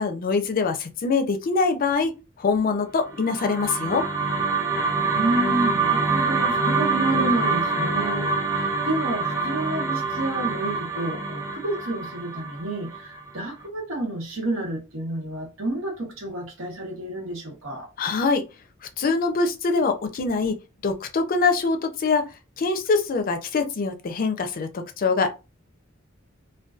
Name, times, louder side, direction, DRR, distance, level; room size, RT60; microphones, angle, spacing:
voice 1, 0.0-4.1 18.0-18.4 19.0-20.6 20.8-22.2 22.6-25.4, left 4 dB, 45° left, 0.4 m, -24 dB
sound 1, 3.1-13.4, right 4 dB, 15° right, 0.4 m, -25 dB
voice 2, 5.0-17.9, right 1 dB, 90° right, 1.1 m, -30 dB
2.5 x 2.2 x 2.3 m
head